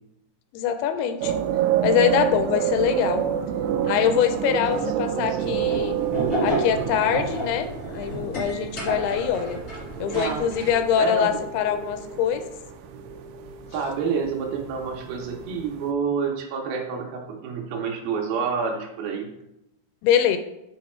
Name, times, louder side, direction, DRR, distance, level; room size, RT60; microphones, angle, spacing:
voice 1, 0.5-1.4 1.8-3.3 3.8-6.0 6.4-7.7 7.9-9.6 10.0-12.4 20.0-20.4, left 8 dB, 85° left, 9 dB, 2.4 m, -23 dB
sound 1, 1.2-15.9, right 10 dB, 90° right, 2.7 m, -29 dB
voice 2, 4.4-5.5 10.1-10.5 11.0-11.4 13.7-19.3, right 5 dB, 75° right, 1 dB, 2.5 m, -29 dB
sound 2, 5.5-10.8, right 1 dB, 55° left, 0.8 m, -30 dB
7.5 x 4.0 x 4.3 m, 0.86 s
omnidirectional pair, 4.6 m